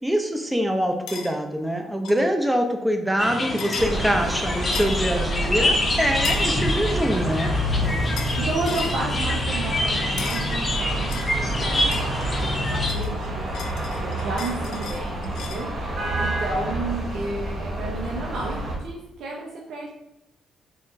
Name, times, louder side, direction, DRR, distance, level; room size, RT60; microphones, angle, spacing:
voice 1, 0.0-7.5, equal, 10° right, 5 dB, 0.5 m, -24 dB
sound 1, 1.1-1.3 2.0-2.3 3.6-3.9 4.7-5.0 6.2-6.5 8.2-8.4 8.7-9.0 10.2-10.5 11.1-12.5 12.9-15.7, left 5 dB, 80° left, 0.5 m, -36 dB
sound 2, 3.2-12.9, left 1 dB, 30° left, 0.6 m, -26 dB
sound 3, 3.8-18.8, right 1 dB, 50° right, 0.9 m, -28 dB
voice 2, 7.8-13.5 14.0-15.7 16.2-19.9, right 3 dB, 70° right, -2 dB, 0.6 m, -32 dB
4.2 x 3.0 x 2.6 m, 0.89 s
cardioid pair, 90°, 0 cm